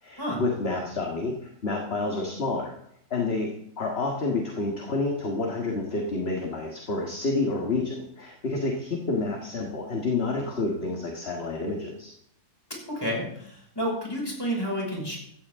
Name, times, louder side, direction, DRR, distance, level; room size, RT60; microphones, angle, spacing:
voice 1, 0.0-2.7 3.1-12.1, left 3 dB, 40° left, 1 dB, 1.9 m, -29 dB
voice 2, 12.7-15.2, equal, 15° left, -3 dB, 5.7 m, -30 dB
15.5 x 14.0 x 3.7 m, 0.70 s
omnidirectional pair, 1.6 m